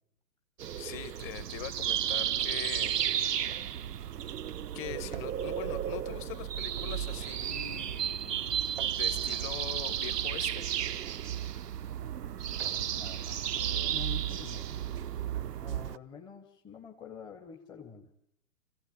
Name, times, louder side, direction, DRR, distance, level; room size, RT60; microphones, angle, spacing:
sound 1, 0.6-15.9, right 10 dB, 80° right, 0.8 m, -33 dB
voice 1, 0.8-3.0 3.2-3.3 4.7-8.5 9.0-10.7, left 13 dB, 25° left, 11 dB, 1.7 m, -42 dB
sound 2, 2.1-16.0, right 12 dB, 40° right, 0.8 m, -54 dB
voice 2, 13.0-14.8 15.6-18.1, left 6 dB, 10° left, 2 dB, 1.2 m, -47 dB
25.5 x 15.5 x 8.7 m, 0.80 s
hypercardioid pair, 130°, 47 cm